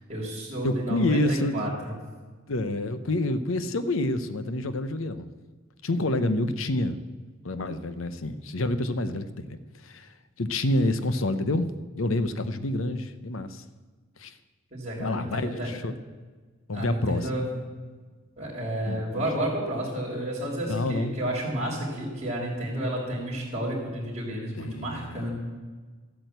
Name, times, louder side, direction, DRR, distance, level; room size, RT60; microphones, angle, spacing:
voice 1, 0.1-2.0 14.7-15.7 16.7-17.4 18.4-25.3, right 1 dB, 35° right, -10 dB, 3.8 m, -31 dB
voice 2, 0.6-1.7 2.5-5.3 5.8-7.0 7.4-11.7 11.9-13.6 14.2-14.3 15.0-15.9 16.7-17.3 18.9-19.2 20.7-21.1 24.6-25.3, left 1 dB, 75° left, 11 dB, 0.9 m, -28 dB
13.0 x 8.8 x 8.0 m, 1.4 s
head